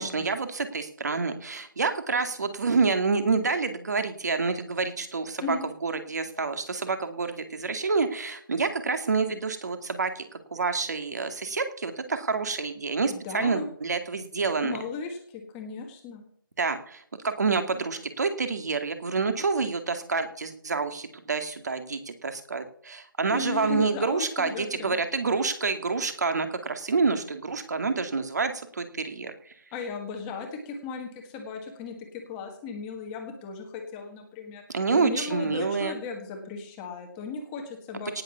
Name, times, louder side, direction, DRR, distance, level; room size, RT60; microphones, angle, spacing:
voice 1, 0.0-5.6 5.8-10.2 10.5-14.8 16.6-29.5 34.7-36.0 38.1-38.2, right 4 dB, 50° right, 8 dB, 2.3 m, -28 dB
voice 2, 13.1-13.7 14.6-16.2 23.3-25.0 29.7-34.6 34.9-38.2, left 4 dB, 10° left, 2 dB, 1.5 m, -36 dB
18.0 x 7.0 x 7.0 m, 0.64 s
figure-of-eight pair, 170°, 12 cm